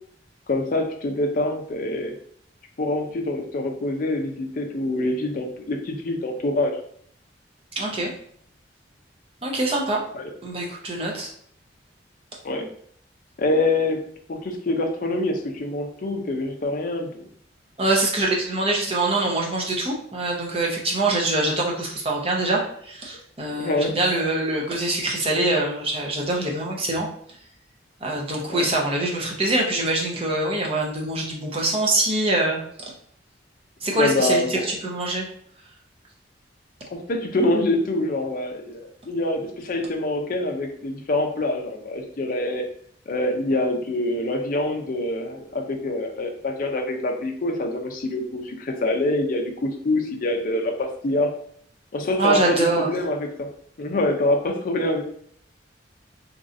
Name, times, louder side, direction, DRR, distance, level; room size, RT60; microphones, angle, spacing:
voice 1, 0.5-2.2 2.8-6.8 10.1-10.3 12.4-12.7 13.4-17.1 23.5-23.9 28.5-28.7 33.9-34.7 36.9-42.7 43.1-51.4 51.9-53.5 53.8-55.0, left 2 dB, 50° left, 4 dB, 0.4 m, -25 dB
voice 2, 7.8-8.1 9.4-10.0 10.4-11.3 17.8-27.1 28.0-32.6 33.8-35.3 52.2-52.9, right 2 dB, 30° right, -1 dB, 0.6 m, -24 dB
3.0 x 2.5 x 2.5 m, 0.63 s
head